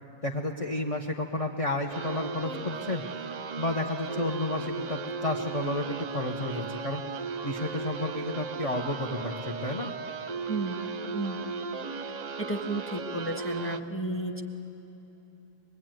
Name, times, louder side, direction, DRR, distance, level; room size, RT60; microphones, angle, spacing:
voice 1, 0.2-3.0 3.6-7.0 7.4-9.9, left 2 dB, 35° left, 2 dB, 1.1 m, -31 dB
sound 1, 1.9-13.8, right 4 dB, 45° right, 0.7 m, -36 dB
voice 2, 10.5-11.4 12.4-14.4, right 2 dB, 10° left, 2 dB, 1.5 m, -33 dB
23.5 x 21.5 x 9.1 m, 2.9 s
omnidirectional pair, 1.1 m